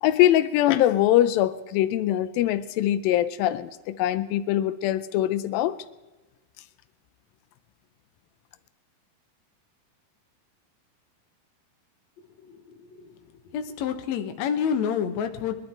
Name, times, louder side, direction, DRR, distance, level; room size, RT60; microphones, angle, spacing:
voice 1, 0.0-5.8, left 13 dB, 85° left, 14 dB, 2.4 m, -22 dB
voice 2, 12.4-13.2 13.5-15.5, left 7 dB, 65° left, 6 dB, 2.0 m, -29 dB
22.0 x 12.0 x 4.4 m, 1.2 s
omnidirectional pair, 4.1 m